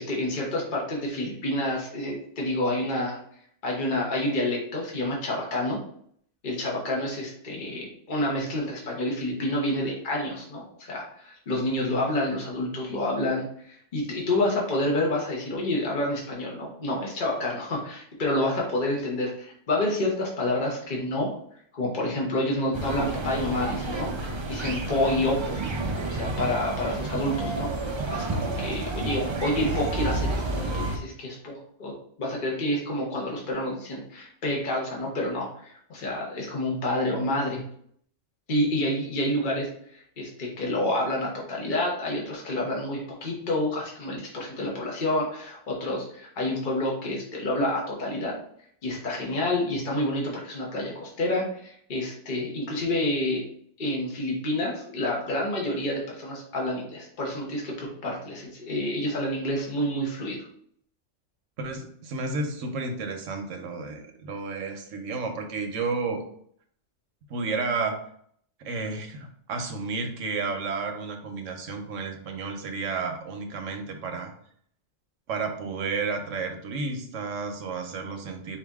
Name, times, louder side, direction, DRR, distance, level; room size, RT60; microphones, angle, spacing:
voice 1, 0.0-3.2 3.6-5.8 6.4-21.3 21.7-25.6 26.1-27.7 28.1-31.9 32.2-37.6 38.5-48.3 48.8-53.4 53.8-60.4, left 1 dB, 45° left, -2 dB, 1.1 m, -28 dB
sound 1, 22.7-31.0, right 2 dB, 45° right, 0.3 m, -30 dB
voice 2, 61.6-66.2 67.3-68.0 68.6-74.3 75.3-78.6, right 4 dB, 80° right, 4 dB, 1.1 m, -32 dB
4.7 x 2.7 x 3.5 m, 0.63 s
omnidirectional pair, 1.3 m